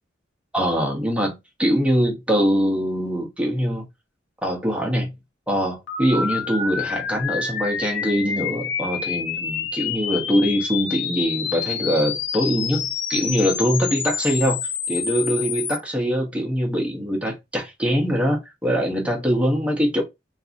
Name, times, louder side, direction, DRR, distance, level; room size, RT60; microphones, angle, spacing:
voice 1, 0.5-3.8 4.4-5.1 5.5-14.6 14.9-20.0, equal, 5° right, 0.8 m, -23 dB
sound 1, 5.9-15.8, left 7 dB, 80° left, 0.6 m, -28 dB
2.7 x 2.5 x 2.5 m
head